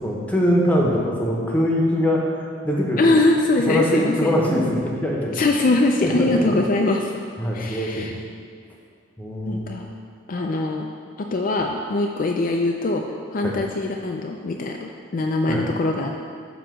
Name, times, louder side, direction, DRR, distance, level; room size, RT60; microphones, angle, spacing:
voice 1, 0.0-2.2 2.6-3.1 3.6-6.5 7.4-8.1 9.2-9.8 13.4-13.5 15.5-15.6, equal, 10° left, -2 dB, 1.0 m, -23 dB
voice 2, 3.0-4.4 5.3-7.1 7.5-8.1 9.5-9.9 10.3-10.9 11.2-13.0 13.3-16.1, left 2 dB, 45° left, 1 dB, 0.4 m, -22 dB
8.9 x 3.0 x 6.2 m, 2.3 s
head